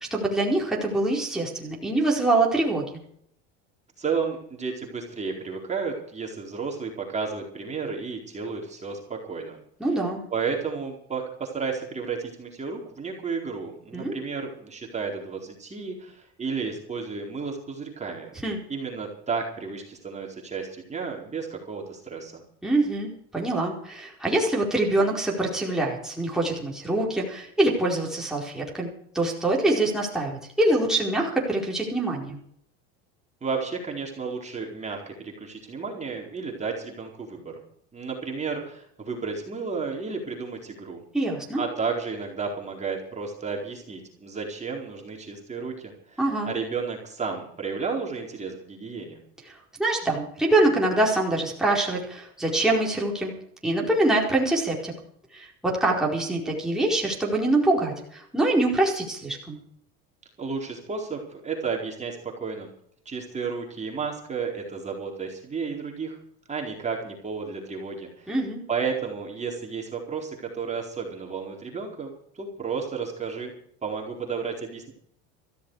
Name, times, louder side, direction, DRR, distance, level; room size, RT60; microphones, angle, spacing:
voice 1, 0.1-2.8 9.8-10.2 13.9-14.2 18.4-18.6 22.6-28.9 29.1-32.4 41.1-41.6 46.2-46.5 49.5-53.3 53.6-54.9 55.3-59.6 68.3-68.6, right 2 dB, ahead, -3 dB, 4.6 m, -24 dB
voice 2, 4.0-9.6 10.3-18.3 18.7-22.4 33.4-37.6 37.9-41.0 41.6-46.2 46.5-49.2 60.4-62.7 63.0-66.2 66.5-68.3 68.7-73.5 73.8-74.9, right 5 dB, 20° right, 0 dB, 4.4 m, -32 dB
16.5 x 14.5 x 4.9 m, 0.67 s
supercardioid pair, 110°, 31 cm